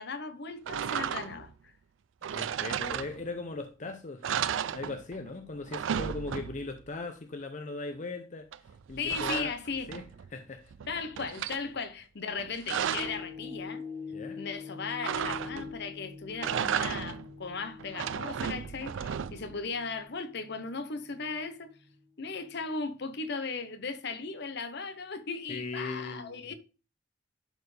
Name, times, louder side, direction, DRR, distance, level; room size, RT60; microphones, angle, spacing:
voice 1, 0.0-1.7 9.0-9.9 10.9-13.8 14.3-21.7 22.2-26.5, left 4 dB, 60° left, 0.9 m, -37 dB
sound 1, 0.7-1.5 2.2-3.5 3.8-3.9 4.2-5.3 5.6-6.8 8.5-10.3 10.7-11.6 12.3-13.3 15.0-15.8 16.3-17.3 17.8-19.6, right 8 dB, 70° right, 0.4 m, -34 dB
voice 2, 2.3-4.3 4.7-8.5 8.9-9.5 9.9-10.0 10.3-10.7 14.1-14.4 25.5-26.5, left 3 dB, 40° left, 0.6 m, -39 dB
sound 2, 13.0-21.4 21.9-22.0, left 5 dB, 25° right, 1.2 m, -44 dB
11.0 x 4.4 x 3.3 m
head